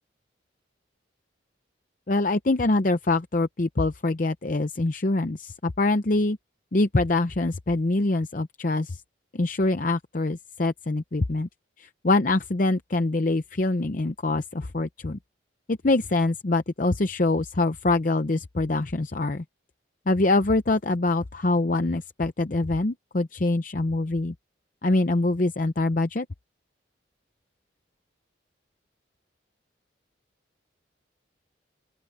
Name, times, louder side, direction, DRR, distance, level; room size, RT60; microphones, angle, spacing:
voice 1, 2.1-6.4 6.7-9.0 9.3-11.5 11.8-15.2 15.7-19.4 20.1-24.3 24.8-26.3, left 2 dB, 45° left, 0.7 m, -24 dB
open air
head